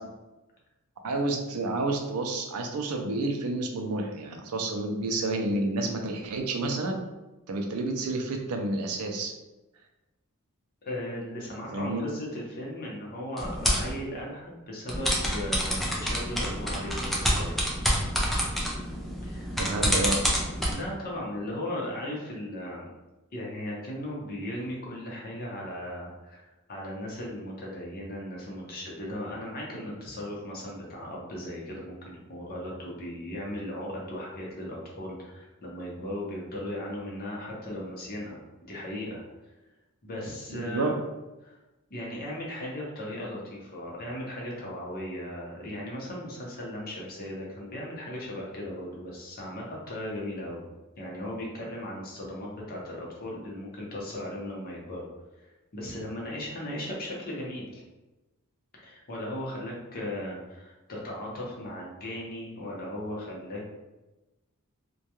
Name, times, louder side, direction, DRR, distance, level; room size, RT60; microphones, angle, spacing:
voice 1, 1.0-7.0 7.5-9.3 11.7-12.0 19.6-20.3 40.5-40.9, right 2 dB, 80° right, 3 dB, 0.4 m, -30 dB
voice 2, 10.8-17.6 19.2-19.5 19.8-20.1 20.7-22.9 23.3-39.2 40.0-40.9 41.4-41.6 41.9-50.6 51.0-55.1 55.7-57.8 58.7-63.8, left 1 dB, 45° left, -3 dB, 0.7 m, -37 dB
sound 1, 13.4-13.9 14.9-20.7, equal, ahead, 0.4 m, -28 dB
2.2 x 2.2 x 2.8 m, 1.1 s
head